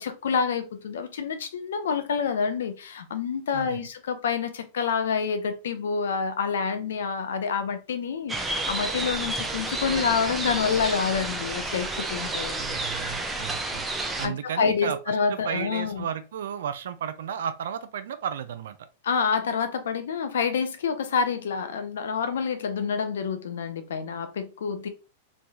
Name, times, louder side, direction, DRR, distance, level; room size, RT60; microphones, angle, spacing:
voice 1, 0.0-12.8 14.0-16.0 19.0-24.9, left 6 dB, 85° left, 0.6 m, -28 dB
voice 2, 3.5-3.9 12.6-13.9 14.2-18.9, right 8 dB, 80° right, 0.4 m, -33 dB
sound 1, 8.3-14.3, right 2 dB, 10° right, 0.5 m, -30 dB
3.2 x 2.2 x 2.7 m
hypercardioid pair, 130°, 0 cm